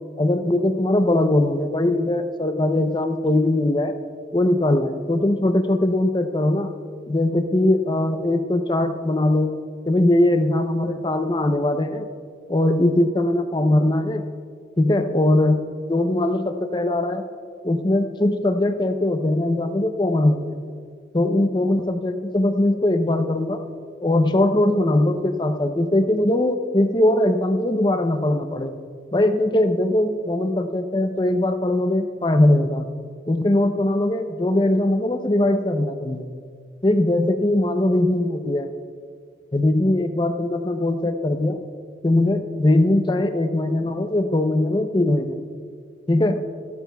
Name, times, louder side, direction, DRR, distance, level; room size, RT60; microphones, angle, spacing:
voice 1, 0.2-3.9 4.3-6.7 7.1-9.6 9.9-12.1 12.5-14.2 14.8-15.6 15.9-17.2 17.6-20.6 21.1-23.6 24.0-28.7 29.1-32.9 33.3-36.3 36.8-38.7 39.5-41.6 42.0-45.4 46.1-46.4, left 1 dB, 25° left, 8 dB, 0.6 m, -20 dB
17.0 x 13.0 x 2.3 m, 2.1 s
head